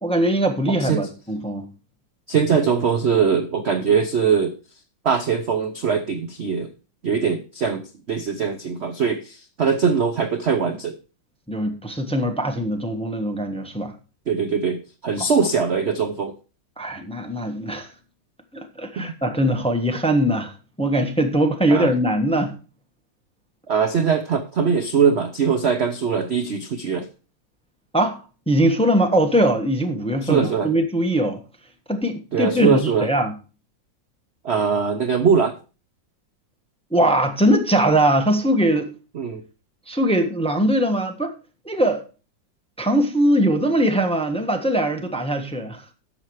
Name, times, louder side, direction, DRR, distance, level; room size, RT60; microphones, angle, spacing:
voice 1, 0.0-1.6 11.5-13.9 15.2-15.3 16.8-17.9 18.5-22.5 27.9-28.2 28.5-31.4 31.9-33.3 36.9-38.9 39.9-41.3 41.6-42.0 42.8-45.8, right 1 dB, 5° left, 1.0 m, -21 dB
voice 2, 2.3-4.5 5.0-6.7 7.0-10.9 14.3-16.3 19.0-19.1 21.7-21.9 23.7-27.1 30.2-30.7 32.3-33.1 34.4-35.6 39.1-39.4, right 6 dB, 55° right, 0.7 m, -21 dB
11.0 x 7.0 x 4.7 m
omnidirectional pair, 2.0 m